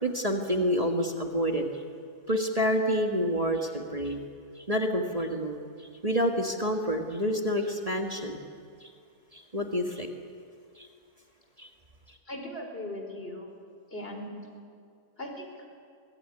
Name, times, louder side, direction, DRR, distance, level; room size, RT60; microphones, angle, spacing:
voice 1, 0.0-1.7 2.3-4.3 4.6-5.6 6.0-8.4 8.8-8.9 9.3-10.1 10.8-10.9 11.6-11.7, equal, 25° right, 3 dB, 1.7 m, -28 dB
voice 2, 12.3-13.5 13.9-14.4 15.2-15.5, left 1 dB, 40° left, 3 dB, 4.2 m, -38 dB
24.0 x 19.0 x 9.9 m, 2.3 s
omnidirectional pair, 1.5 m